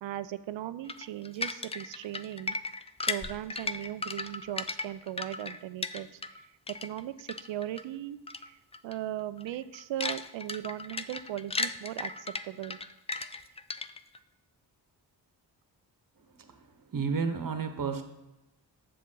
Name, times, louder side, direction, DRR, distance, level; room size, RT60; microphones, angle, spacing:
voice 1, 0.0-2.5 3.1-6.5 6.8-12.8, right 12 dB, 75° right, 14 dB, 0.5 m, -38 dB
sound 1, 0.9-6.4 6.7-7.8 8.3-8.5 8.7-8.9 9.4-14.2, left 3 dB, 15° left, 0.3 m, -36 dB
voice 2, 16.9-18.0, right 5 dB, 45° right, 7 dB, 1.1 m, -31 dB
7.5 x 7.0 x 3.8 m, 0.95 s
supercardioid pair, 45°, 45 cm